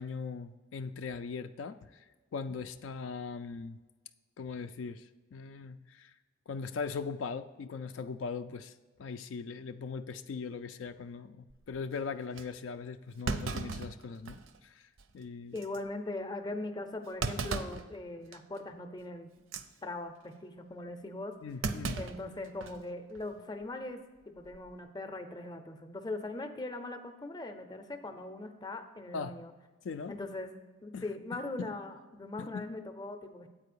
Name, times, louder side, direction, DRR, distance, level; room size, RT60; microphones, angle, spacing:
voice 1, 0.0-2.1 2.3-3.8 4.4-6.2 6.5-14.9 15.1-15.5 21.4-22.0 29.1-29.4 29.8-30.1 30.9-31.0 31.6-31.7 32.4-32.6, left 5 dB, 70° left, 9 dB, 0.3 m, -40 dB
Thump thud, 11.5-11.8 12.4-12.5 13.3-14.6 15.0-15.1 15.6-15.8 17.2-17.9 18.3-18.6 19.4-19.7 21.6-22.8 23.2-23.3 24.4-24.7, right 4 dB, 75° right, 0.5 m, -36 dB
voice 2, 15.5-19.3 19.8-21.4 21.9-29.5 30.1-30.5 30.8-33.5, left 2 dB, 20° left, 7 dB, 0.5 m, -40 dB
8.6 x 4.5 x 6.7 m, 1.3 s
head